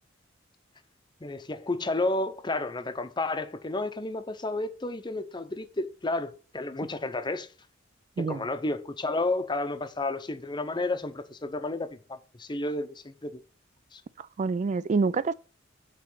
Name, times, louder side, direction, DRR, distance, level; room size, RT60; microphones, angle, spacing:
voice 1, 1.2-7.5 8.2-13.4 13.9-14.0, left 2 dB, 25° left, 0.7 m, -31 dB
voice 2, 14.2-15.3, right 4 dB, 40° right, 0.3 m, -27 dB
8.5 x 3.2 x 6.2 m
head